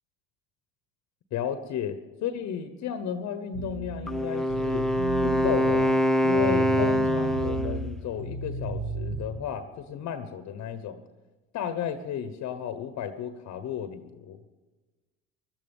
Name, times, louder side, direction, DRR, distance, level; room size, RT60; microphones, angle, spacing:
voice 1, 1.3-4.9 5.2-11.0 11.5-14.4, left 8 dB, 50° left, 10 dB, 1.1 m, -33 dB
sound 1, 3.5-9.3, right 3 dB, 80° right, 2.2 m, -34 dB
Wind instrument woodwind instrument, 4.1-7.9, equal, ahead, 0.8 m, -24 dB
17.5 x 12.5 x 5.4 m, 1.2 s
hypercardioid pair, 80°, 34 cm